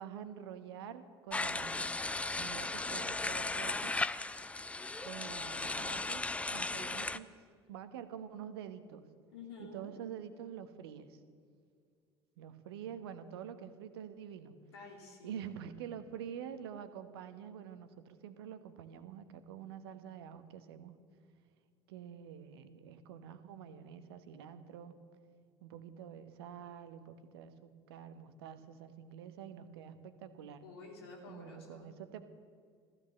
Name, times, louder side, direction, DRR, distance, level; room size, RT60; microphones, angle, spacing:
voice 1, 0.0-1.9 2.4-3.9 5.0-6.2 6.5-7.3 7.7-9.0 9.6-11.2 12.4-14.5 15.2-20.9 21.9-25.0 25.6-30.6 31.2-32.3, right 9 dB, 65° right, 10 dB, 1.1 m, -47 dB
sound 1, 1.3-7.2, left 2 dB, 10° left, 0.6 m, -36 dB
voice 2, 9.3-9.9 14.7-15.4 30.6-31.8, left 4 dB, 70° left, 1 dB, 2.9 m, -50 dB
14.5 x 14.5 x 6.7 m, 2.2 s
figure-of-eight pair, 65°, 14 cm